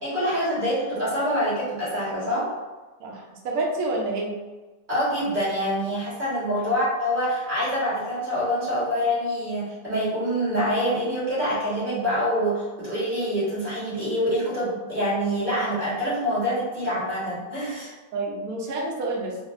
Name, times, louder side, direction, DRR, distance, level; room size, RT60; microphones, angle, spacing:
voice 1, 0.0-2.5 4.9-17.9, equal, 30° right, -10 dB, 1.5 m, -26 dB
voice 2, 3.0-4.3 6.5-6.7 18.1-19.4, right 2 dB, 65° right, -2 dB, 1.1 m, -28 dB
3.9 x 2.1 x 2.4 m, 1.2 s
omnidirectional pair, 1.8 m